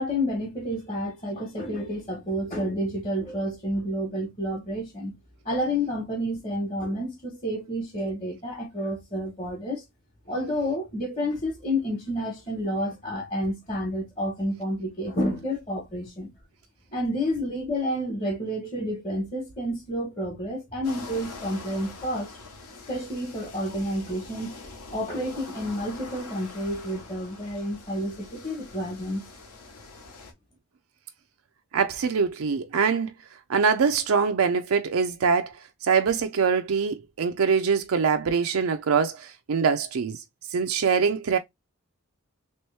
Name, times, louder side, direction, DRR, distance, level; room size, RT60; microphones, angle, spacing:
voice 1, 0.0-5.1 5.4-9.8 10.3-16.3 16.9-22.3 22.9-24.6 24.9-29.2, equal, 30° left, 1.1 m, -30 dB
sound 1, 20.8-30.3, left 3 dB, 90° left, 1.0 m, -44 dB
voice 2, 31.7-33.1 33.5-35.5 35.8-40.2 40.5-41.4, right 6 dB, 75° right, 0.4 m, -23 dB
3.1 x 3.0 x 3.2 m
head